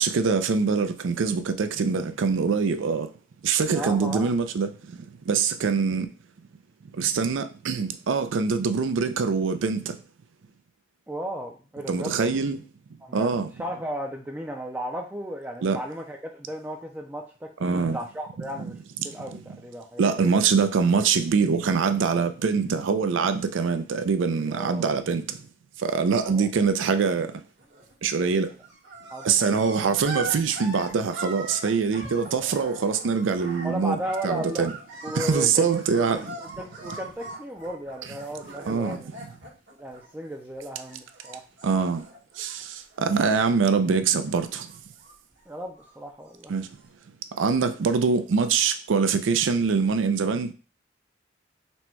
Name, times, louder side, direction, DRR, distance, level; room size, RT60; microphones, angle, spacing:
voice 1, 0.0-3.1 3.4-4.7 5.3-6.1 7.0-9.8 11.9-12.6 13.1-13.5 15.6-15.8 17.6-18.0 19.3-19.4 20.0-25.2 25.8-27.3 28.0-28.5 29.2-34.0 34.2-34.7 35.1-36.2 38.7-39.0 41.6-42.0 42.4-42.6 43.0-44.7 46.5-46.7 47.4-50.5, right 5 dB, 85° right, 0.4 m, -24 dB
voice 2, 3.7-4.4 11.1-12.3 13.0-13.3 13.6-18.7 19.0-20.0 24.5-24.9 26.2-26.5 29.1-29.9 32.3-32.6 33.6-34.7 35.0-35.7 36.0-39.1 39.8-41.4 45.5-46.5, equal, 10° right, 0.3 m, -35 dB
sound 1, 27.6-28.0 28.3-40.6 40.9-43.0 43.3-44.0 44.3-46.1 46.8-46.9, right 2 dB, 70° right, 1.4 m, -41 dB
4.2 x 2.2 x 4.4 m
head